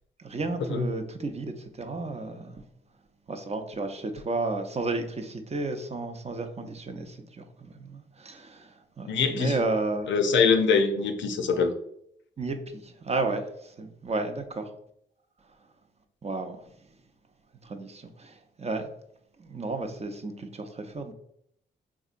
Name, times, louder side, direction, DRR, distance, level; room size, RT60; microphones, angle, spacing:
voice 1, 0.2-2.6 3.3-10.1 12.4-14.7 16.2-16.6 17.6-18.9 19.4-21.1, right 3 dB, 35° right, 0.5 m, -33 dB
voice 2, 9.1-9.6 10.1-11.7, left 5 dB, 70° left, 0.5 m, -23 dB
3.5 x 2.8 x 2.5 m
supercardioid pair, 50°, 20 cm